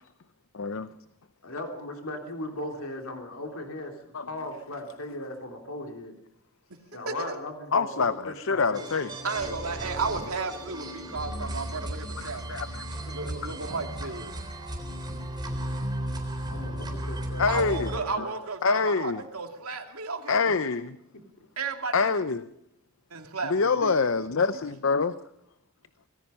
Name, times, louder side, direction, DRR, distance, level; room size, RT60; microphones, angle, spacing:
voice 1, 1.4-6.1 6.9-8.9 13.1-13.2 16.5-17.4 17.7-18.4, left 1 dB, 75° left, 3 dB, 2.9 m, -38 dB
voice 2, 7.1-7.4 9.2-12.6 13.1-14.3 17.5-20.7 21.6-22.2 23.1-24.0, right 4 dB, 80° right, 4 dB, 2.7 m, -34 dB
voice 3, 7.7-9.1 12.2-12.9 17.4-17.9 18.6-19.2 20.3-21.0 21.9-22.5 23.5-25.1, left 4 dB, 60° left, 13 dB, 0.7 m, -25 dB
sound 1, 8.7-18.0, right 1 dB, 20° right, 3.6 m, -35 dB
26.0 x 18.5 x 5.6 m, 0.75 s
head